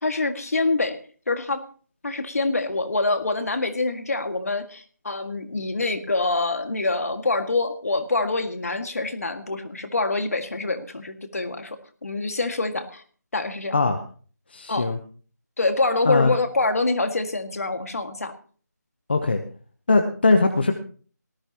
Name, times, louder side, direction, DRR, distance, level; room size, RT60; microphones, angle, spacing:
voice 1, 0.0-1.0 1.3-1.6 2.0-13.0 13.3-13.7 14.7-14.9 15.6-18.3, left 3 dB, 55° left, 7 dB, 2.0 m, -25 dB
voice 2, 14.5-15.0 16.0-16.4 19.1-19.4 19.9-20.7, left 3 dB, 35° left, 6 dB, 1.0 m, -20 dB
18.5 x 14.0 x 3.0 m, 0.43 s
figure-of-eight pair, 175°, 10 cm